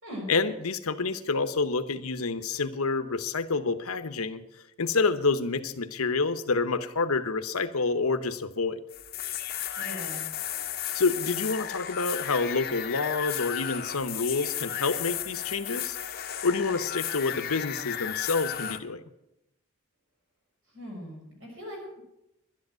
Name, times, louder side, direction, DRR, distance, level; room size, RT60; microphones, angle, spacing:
voice 1, 0.3-8.8 10.9-16.0 16.4-19.0, left 4 dB, 85° left, 11 dB, 0.9 m, -28 dB
sound 1, 8.9-18.8, left 10 dB, 45° left, 0.9 m, -34 dB
voice 2, 9.6-10.2 20.7-22.0, equal, 55° right, -1 dB, 6.2 m, -40 dB
11.5 x 10.5 x 7.5 m, 0.88 s
head